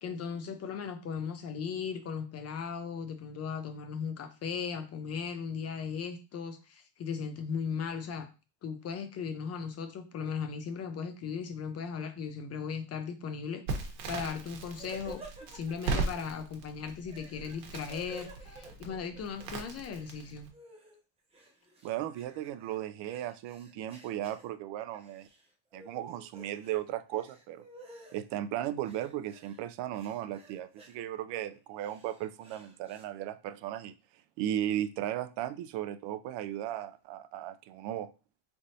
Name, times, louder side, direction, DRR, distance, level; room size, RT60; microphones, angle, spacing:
voice 1, 0.0-8.3 8.6-15.2 15.5-20.5, left 6 dB, 35° left, 8 dB, 0.4 m, -37 dB
Crackle, 13.7-20.5, right 3 dB, 85° right, 1.2 m, -38 dB
sound 1, 14.8-16.3 17.0-19.5 19.7-21.0 21.3-24.5 24.9-25.4 25.7-26.8 27.1-28.2 28.8-29.6 29.9-31.0 31.6-33.0, right 2 dB, 15° right, 0.7 m, -52 dB
voice 2, 21.8-25.3 25.7-27.7 28.1-33.9 34.4-38.1, right 12 dB, 65° right, 11 dB, 0.5 m, -36 dB
3.9 x 3.4 x 2.7 m, 0.33 s
cardioid pair, 140°, 47 cm